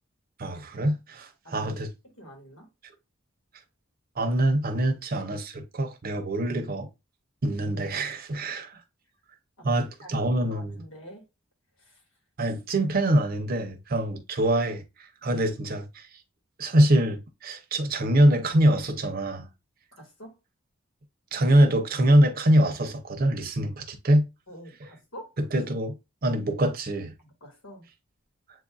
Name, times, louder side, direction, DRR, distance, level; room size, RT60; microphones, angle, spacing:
voice 1, 0.4-1.9 4.2-6.9 7.4-8.8 9.6-10.8 12.4-14.8 15.2-16.1 16.6-19.5 21.3-24.3 25.4-26.0 26.2-27.1, right 1 dB, 45° right, 0.7 m, -24 dB
voice 2, 2.0-2.7 9.6-11.2 11.8-12.0 15.2-15.3 20.0-20.4 24.5-25.4 27.2-27.8, equal, 75° left, 1.9 m, -46 dB
7.7 x 2.6 x 2.3 m
head